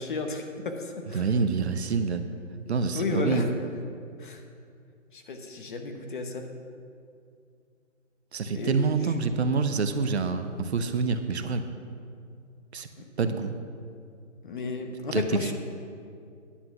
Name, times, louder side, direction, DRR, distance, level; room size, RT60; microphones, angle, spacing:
voice 1, 0.0-1.3 2.9-3.5 4.2-4.4 5.1-6.5 8.5-8.8 13.0-13.1 14.4-15.5, left 4 dB, 40° left, 5 dB, 0.9 m, -33 dB
voice 2, 1.1-2.2 2.7-3.5 8.3-11.7 12.7-12.9 13.2-13.5 15.1-15.2, right 4 dB, 55° right, 8 dB, 0.8 m, -26 dB
10.0 x 7.7 x 5.8 m, 2.4 s
hypercardioid pair, 160°, 39 cm